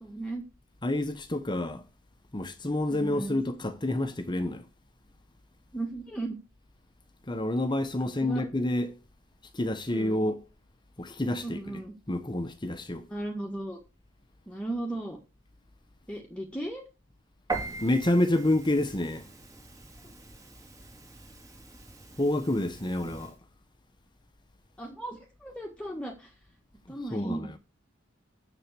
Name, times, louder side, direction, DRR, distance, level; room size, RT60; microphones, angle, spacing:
voice 1, 0.0-0.5 2.9-3.4 5.7-6.4 8.2-8.4 9.9-10.2 11.4-11.9 13.1-13.8 14.5-15.2 16.1-16.8 20.0-20.1 24.8-26.4 26.9-27.5, right 2 dB, 5° left, 1.7 m, -36 dB
voice 2, 0.8-1.9 2.3-4.7 7.2-9.0 9.5-10.5 11.0-11.8 12.1-13.1 17.8-19.3 22.2-23.4 26.9-27.6, left 1 dB, 25° left, 0.9 m, -28 dB
Piano, 17.5-23.3, right 3 dB, 20° right, 2.7 m, -41 dB
7.5 x 7.1 x 6.8 m
head